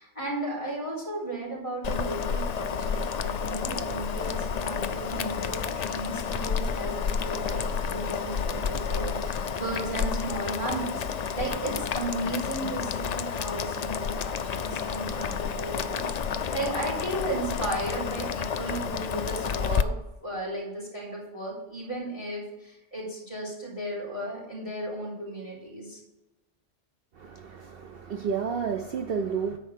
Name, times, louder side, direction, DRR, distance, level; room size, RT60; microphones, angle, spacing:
voice 1, 0.0-6.9 7.2-11.0 11.3-19.9 20.2-26.0, right 1 dB, 25° left, -7 dB, 4.0 m, -35 dB
Boiling, 1.8-19.8, left 6 dB, 60° left, 0.4 m, -30 dB
voice 2, 27.2-29.6, right 6 dB, 60° right, 6 dB, 0.8 m, -31 dB
10.0 x 4.6 x 6.6 m, 0.99 s
omnidirectional pair, 1.2 m